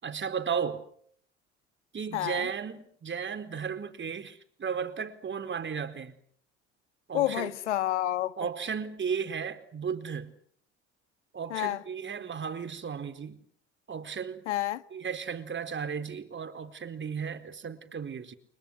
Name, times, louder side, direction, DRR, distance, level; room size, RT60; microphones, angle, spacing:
voice 1, 0.0-0.8 1.9-6.1 7.1-7.5 8.4-10.3 11.3-13.4 13.9-14.4 14.9-18.4, right 6 dB, 35° right, 4.3 m, -35 dB
voice 2, 2.1-2.5 7.1-8.3 11.5-11.8 14.5-14.8, left 14 dB, 90° left, 1.6 m, -29 dB
30.0 x 26.0 x 6.5 m
hypercardioid pair, 70°, 34 cm